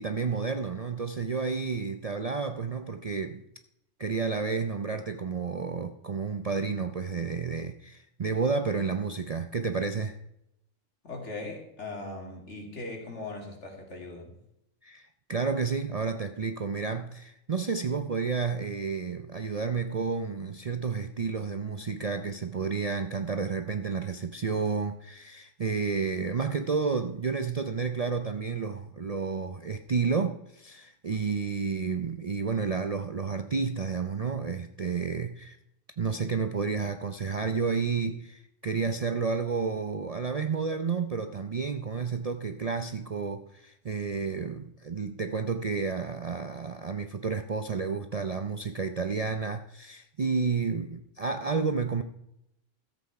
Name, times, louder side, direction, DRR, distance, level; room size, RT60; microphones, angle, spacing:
voice 1, 0.0-3.4 4.0-10.2 14.8-35.6 36.0-52.0, right 5 dB, 45° right, 8 dB, 0.5 m, -31 dB
voice 2, 11.0-14.3, left 2 dB, 65° left, 1 dB, 2.7 m, -39 dB
13.5 x 8.1 x 4.7 m, 0.82 s
omnidirectional pair, 1.3 m